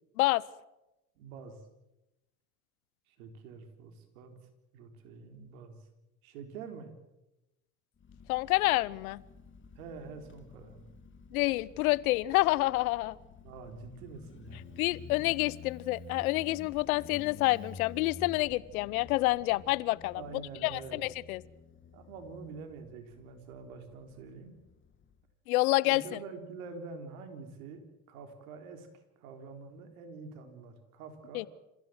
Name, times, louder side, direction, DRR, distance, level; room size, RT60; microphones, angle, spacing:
voice 1, 1.2-1.6 3.1-4.3 4.7-5.8 6.2-6.9 9.8-10.9 13.4-14.7 20.1-21.0 21.9-24.6 25.8-27.8 28.1-28.9 29.2-31.5, right 4 dB, 80° right, 6 dB, 4.0 m, -46 dB
Motorcycle, 8.0-25.2, left 5 dB, 30° left, 2.2 m, -51 dB
voice 2, 8.3-9.2 11.3-13.2 14.8-20.2 20.6-21.4 25.5-26.0 31.3-31.5, left 20 dB, 80° left, 22 dB, 0.9 m, -28 dB
28.0 x 16.0 x 7.8 m, 0.93 s
hypercardioid pair, 85°, 42 cm